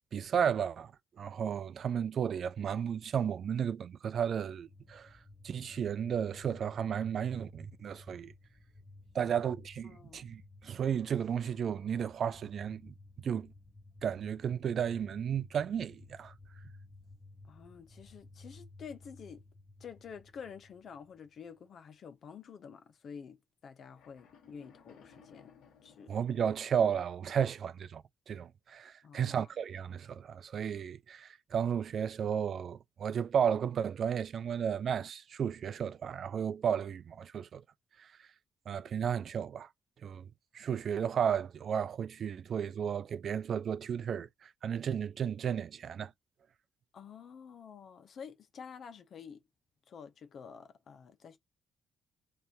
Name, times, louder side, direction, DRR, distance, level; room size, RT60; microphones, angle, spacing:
voice 1, 0.1-0.9 1.2-5.1 5.4-8.3 9.1-12.9 13.2-13.5 14.0-16.3 26.1-37.6 38.0-38.1 38.7-39.7 40.0-40.3 40.5-46.1, right 8 dB, 55° right, 0.5 m, -33 dB
sound 1, 4.7-21.5, left 2 dB, 15° left, 1.4 m, -55 dB
voice 2, 9.9-10.3 17.4-19.4 19.8-25.5 25.8-26.1 29.0-29.4 46.9-49.4 49.9-51.4, left 6 dB, 55° left, 1.1 m, -49 dB
sound 2, 23.9-27.2, left 6 dB, 80° left, 1.4 m, -61 dB
3.3 x 2.8 x 4.5 m
cardioid pair, 90°, 0 cm